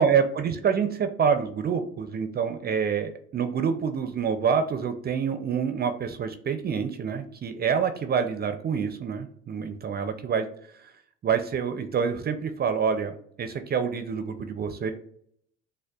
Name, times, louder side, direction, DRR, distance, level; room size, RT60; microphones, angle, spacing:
voice 1, 0.0-10.5 10.8-10.9 11.2-14.9, right 6 dB, 35° right, 8 dB, 0.4 m, -27 dB
6.3 x 2.1 x 2.3 m, 0.65 s
supercardioid pair, 80°, 30 cm